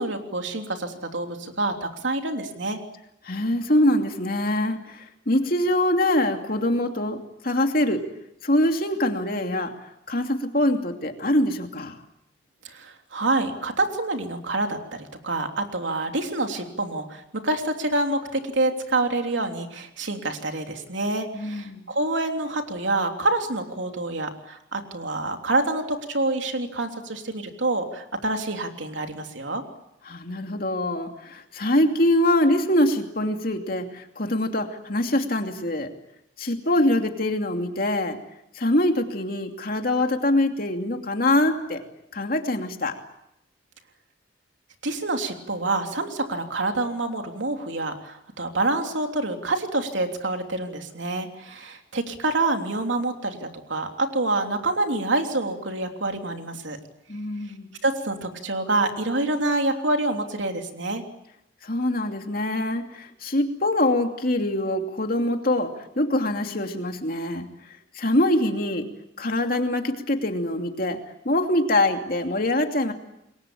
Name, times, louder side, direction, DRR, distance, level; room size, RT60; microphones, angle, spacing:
voice 1, 0.0-2.8 12.6-29.6 44.8-56.8 57.8-61.0, right 2 dB, 80° right, 4 dB, 3.2 m, -27 dB
voice 2, 3.2-8.1 8.4-9.7 10.1-12.0 21.3-21.9 30.1-35.9 36.4-38.2 38.5-41.8 42.1-43.0 57.1-57.7 61.6-67.5 67.9-68.9 69.2-71.0 71.2-72.9, left 1 dB, 50° left, 4 dB, 2.7 m, -24 dB
28.5 x 22.5 x 8.6 m, 0.83 s
head